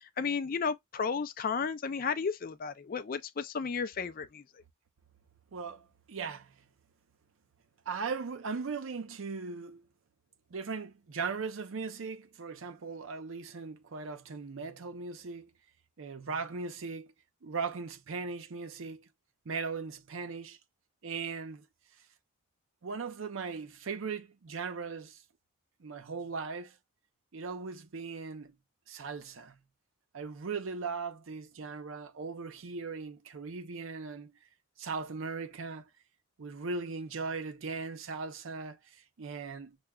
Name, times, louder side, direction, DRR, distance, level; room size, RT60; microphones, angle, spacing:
voice 1, 0.0-4.4, left 5 dB, 45° left, 0.4 m, -33 dB
voice 2, 5.5-6.5 7.9-9.8 10.5-15.5 16.0-17.1 17.4-19.1 19.5-20.6 21.0-21.6 22.8-25.2 25.8-26.7 27.3-28.5 28.9-29.6 30.1-34.3 34.8-35.9 36.4-39.8, right 4 dB, 80° right, 0.6 m, -38 dB
5.9 x 2.2 x 2.2 m
head